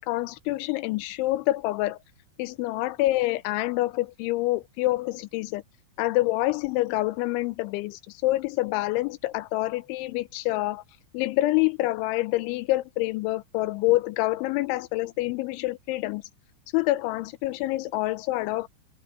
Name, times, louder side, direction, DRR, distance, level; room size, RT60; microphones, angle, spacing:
voice 1, 0.0-2.0 2.4-5.6 6.0-10.8 11.1-16.2 16.7-18.7, left 18 dB, 85° left, 2.9 m, -27 dB
open air
omnidirectional pair, 5.6 m